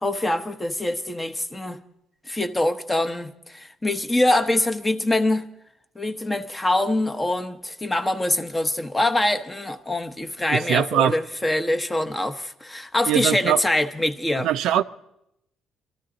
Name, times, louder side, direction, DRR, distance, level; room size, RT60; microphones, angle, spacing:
voice 1, 0.0-1.8 2.3-5.5 6.0-14.5, left 1 dB, 15° left, 0.8 m, -24 dB
voice 2, 10.5-11.1 13.1-13.6 14.4-14.8, right 11 dB, 80° right, 0.4 m, -21 dB
23.5 x 13.5 x 3.8 m
cardioid pair, 110°, 0 cm